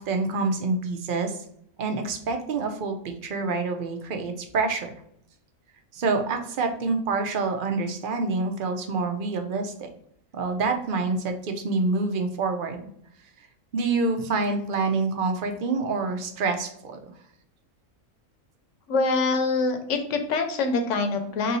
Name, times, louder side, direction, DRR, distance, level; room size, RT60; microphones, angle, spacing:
voice 1, 0.0-1.4 1.8-4.9 5.9-9.9 10.3-12.8 13.7-17.0 21.3-21.4, right 3 dB, 50° right, 5 dB, 0.6 m, -27 dB
voice 2, 18.9-21.6, left 3 dB, 65° left, 6 dB, 1.0 m, -25 dB
3.7 x 2.7 x 4.0 m, 0.71 s
omnidirectional pair, 1.5 m